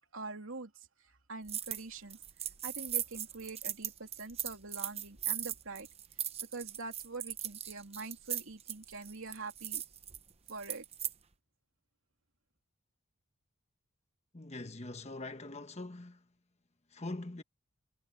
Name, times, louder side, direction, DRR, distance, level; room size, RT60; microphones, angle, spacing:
voice 1, 0.0-2.2 2.6-5.9 6.5-9.8 10.5-10.8, right 3 dB, 65° right, 3.2 m, -44 dB
sound 1, 1.5-1.8 2.1-11.1, right 11 dB, 30° right, 0.8 m, -39 dB
voice 2, 14.3-16.2 16.9-17.4, left 2 dB, 30° left, 1.3 m, -43 dB
head